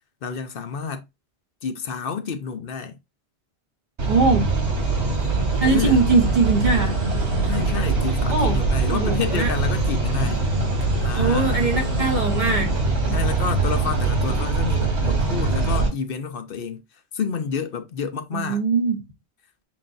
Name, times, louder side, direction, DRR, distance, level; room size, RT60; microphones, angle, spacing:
voice 1, 0.2-1.1 1.6-3.0 5.6-6.1 7.4-10.4 11.0-11.7 13.1-16.8 17.1-18.6, left 6 dB, 60° left, 0.8 m, -29 dB
sound 1, 4.0-15.9, right 3 dB, 85° right, 2.0 m, -22 dB
voice 2, 4.1-4.5 5.6-6.9 8.3-8.6 8.9-9.5 11.2-12.7 13.1-13.2 18.3-19.0, right 4 dB, 45° right, 1.3 m, -21 dB
7.4 x 2.5 x 2.5 m
omnidirectional pair, 1.1 m